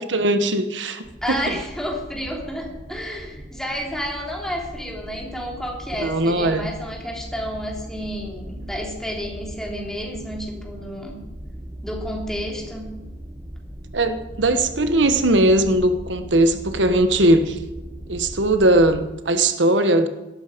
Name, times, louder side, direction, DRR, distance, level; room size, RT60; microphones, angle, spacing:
voice 1, 0.0-1.6 6.0-6.7 13.9-17.6 18.1-20.1, right 1 dB, 85° right, 8 dB, 1.3 m, -19 dB
sound 1, 1.0-19.0, right 1 dB, 25° right, 2.0 m, -38 dB
voice 2, 1.2-11.2 11.8-12.9, equal, 5° left, -1 dB, 3.6 m, -31 dB
17.0 x 13.5 x 5.2 m, 1.1 s
head